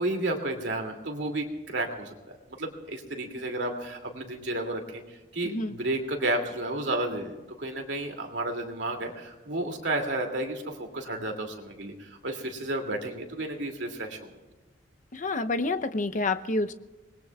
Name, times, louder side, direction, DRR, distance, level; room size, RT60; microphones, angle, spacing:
voice 1, 0.0-2.1 2.6-5.0 5.3-14.3, right 1 dB, 70° right, 3 dB, 2.6 m, -32 dB
voice 2, 5.4-5.7 15.1-16.7, left 2 dB, 45° left, 9 dB, 0.7 m, -28 dB
25.5 x 20.5 x 2.4 m, 1.2 s
head